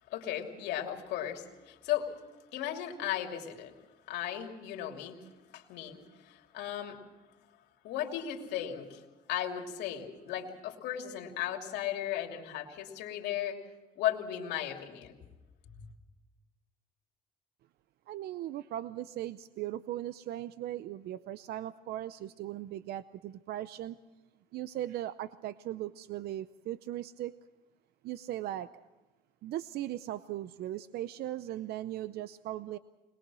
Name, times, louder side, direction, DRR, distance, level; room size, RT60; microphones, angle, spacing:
voice 1, 0.1-2.1 2.5-3.7 4.1-5.2 5.5-7.0 7.8-9.0 9.3-13.6 14.0-15.1, left 11 dB, 85° left, 3 dB, 2.8 m, -36 dB
voice 2, 18.1-24.0 24.5-27.3 28.0-28.9 29.4-32.8, right 13 dB, 70° right, 14 dB, 0.6 m, -38 dB
22.0 x 21.0 x 6.2 m, 1.1 s
cardioid pair, 110°, 17 cm